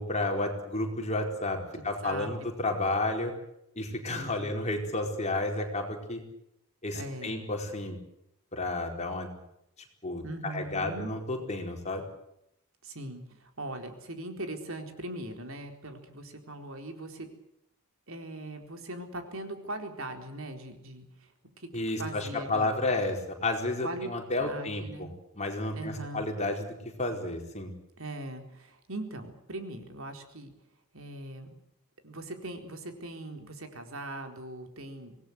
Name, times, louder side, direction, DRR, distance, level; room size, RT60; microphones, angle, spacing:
voice 1, 0.0-3.3 3.8-6.2 6.8-8.0 8.5-9.4 10.0-12.0 21.7-25.1 25.3-27.7, left 2 dB, 30° left, 3 dB, 4.6 m, -31 dB
voice 2, 1.7-2.3 4.1-4.5 6.9-7.5 10.2-11.1 12.8-17.3 18.1-21.3 21.6-21.7 22.0-22.7 23.8-24.1 24.4-25.1 25.7-26.2 28.0-30.5 30.9-31.5 32.0-35.2, right 1 dB, 65° right, 5 dB, 4.2 m, -40 dB
26.0 x 19.0 x 8.1 m, 0.79 s
head